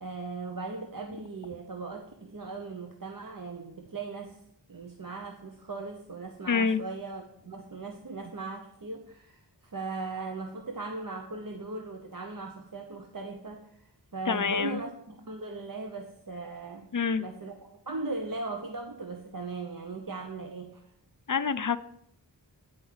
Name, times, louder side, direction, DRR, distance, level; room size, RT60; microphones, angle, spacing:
voice 1, 0.0-4.4 4.7-16.9 17.2-20.9, right 3 dB, 45° right, 4 dB, 0.8 m, -38 dB
voice 2, 6.5-6.8 14.3-14.8 16.9-17.2 21.3-21.8, left 6 dB, 45° left, 13 dB, 0.5 m, -27 dB
10.0 x 4.7 x 5.7 m, 0.71 s
wide cardioid pair, 45°, 44 cm